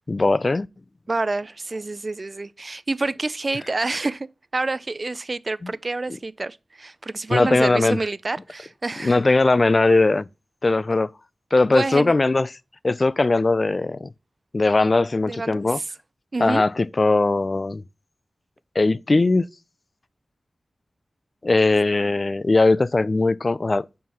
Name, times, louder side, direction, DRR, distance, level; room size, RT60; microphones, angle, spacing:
voice 1, 0.1-0.7 5.6-5.7 7.3-8.0 9.0-10.3 10.6-11.1 11.5-12.5 12.8-14.1 14.5-15.8 16.4-17.8 18.8-19.5 21.4-24.1, left 3 dB, 45° left, 0.3 m, -19 dB
voice 2, 1.1-9.2 10.9-11.0 11.7-12.1 15.3-15.8 16.3-16.6, right 3 dB, 45° right, 0.3 m, -28 dB
5.3 x 4.6 x 6.2 m
wide cardioid pair, 60°, 0 cm